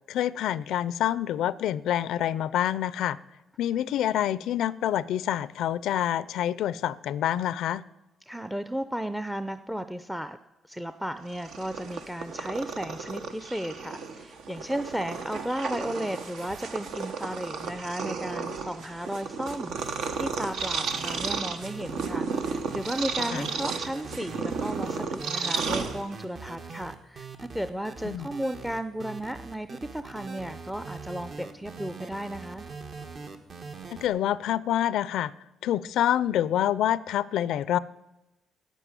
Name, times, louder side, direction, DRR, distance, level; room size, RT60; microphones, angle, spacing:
voice 1, 0.1-3.2 3.6-7.8 23.3-23.5 28.0-28.3 33.9-35.3 35.6-37.8, left 11 dB, 80° left, 19 dB, 0.4 m, -27 dB
voice 2, 8.3-10.4 10.7-19.7 20.1-32.7, right 1 dB, 5° right, 11 dB, 0.5 m, -34 dB
Purr, 11.2-26.4, right 5 dB, 75° right, 1.1 m, -33 dB
sound 1, 19.5-34.1, right 4 dB, 55° right, 1.4 m, -42 dB
9.2 x 8.9 x 9.6 m, 0.99 s
cardioid pair, 90°, 0 cm